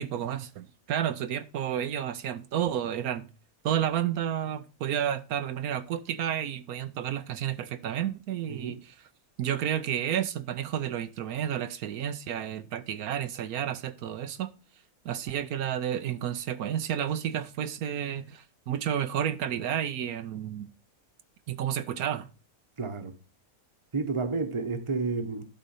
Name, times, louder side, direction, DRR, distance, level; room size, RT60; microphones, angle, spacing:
voice 1, 0.0-3.2 3.6-8.9 9.4-14.5 15.0-20.7 21.5-22.3, right 10 dB, 80° right, 1.2 m, -31 dB
voice 2, 22.8-23.1 23.9-25.4, right 4 dB, 25° right, 1.0 m, -30 dB
11.5 x 4.0 x 5.5 m
omnidirectional pair, 1.6 m